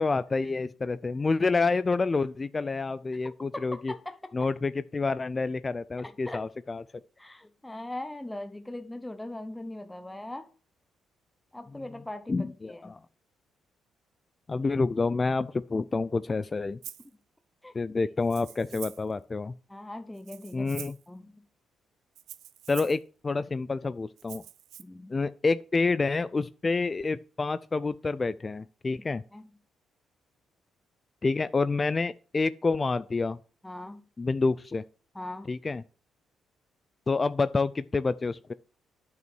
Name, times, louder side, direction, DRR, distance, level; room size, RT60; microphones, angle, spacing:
voice 1, 0.0-3.9 4.3-6.8 12.3-13.0 14.5-16.8 17.7-19.5 20.5-20.9 22.7-24.4 25.1-29.2 31.2-33.4 34.2-34.8 35.5-35.8 37.1-38.5, left 3 dB, 30° left, 0.3 m, -28 dB
voice 2, 3.5-4.3 6.0-6.4 7.2-10.5 11.5-12.4 12.6-12.9 17.6-17.7 19.7-21.4 24.8-25.2 29.0-29.5 33.6-34.0 35.1-35.5, left 1 dB, 10° left, 0.8 m, -40 dB
Rattle (instrument), 16.8-17.1 18.2-19.1 20.1-21.1 22.1-23.0 24.2-24.8, right 11 dB, 80° right, 0.6 m, -45 dB
9.3 x 5.5 x 6.1 m
cardioid pair, 90°, 0 cm